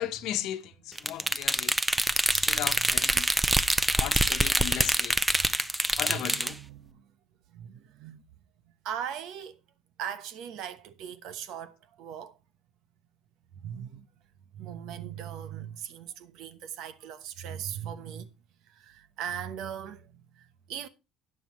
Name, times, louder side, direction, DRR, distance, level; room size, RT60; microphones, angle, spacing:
voice 1, 0.0-1.7 2.3-3.3 4.0-5.2 6.0-6.6, left 12 dB, 60° left, 1.2 m, -35 dB
sound 1, 1.0-6.5, right 1 dB, 5° right, 0.5 m, -25 dB
voice 2, 2.1-2.9 3.5-3.6 3.9-4.0 5.3-7.1 7.5-8.2 8.8-9.6 10.0-12.4 13.5-14.1 14.5-18.3 18.7-20.9, right 9 dB, 60° right, 1.1 m, -40 dB
13.0 x 9.6 x 3.1 m
cardioid pair, 155°, 0 cm